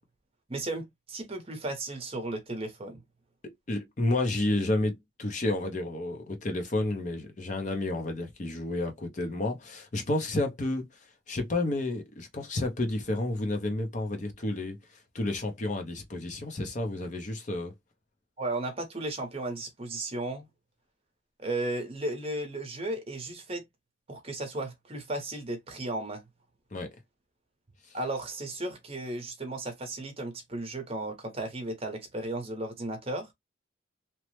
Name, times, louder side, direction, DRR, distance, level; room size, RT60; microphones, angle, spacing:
voice 1, 0.5-3.0 18.4-20.5 21.4-23.6 24.1-26.2 27.9-33.3, right 2 dB, 30° right, 0.8 m, -35 dB
voice 2, 3.4-10.9 11.3-14.8 15.1-17.7 26.7-26.9, left 2 dB, 40° left, 0.6 m, -31 dB
3.0 x 2.0 x 3.0 m
head